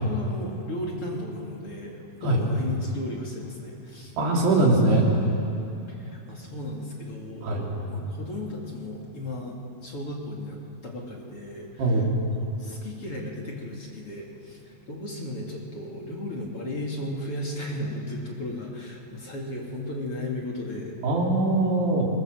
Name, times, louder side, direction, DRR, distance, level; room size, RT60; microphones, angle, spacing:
voice 1, 0.0-4.1 5.9-12.0 12.4-21.0, left 1 dB, 40° left, -1 dB, 2.8 m, -35 dB
voice 2, 4.2-5.1 7.4-7.7 11.8-12.1 21.0-22.1, right 2 dB, 80° right, -1 dB, 5.5 m, -21 dB
28.5 x 20.5 x 7.6 m, 2.9 s
omnidirectional pair, 4.7 m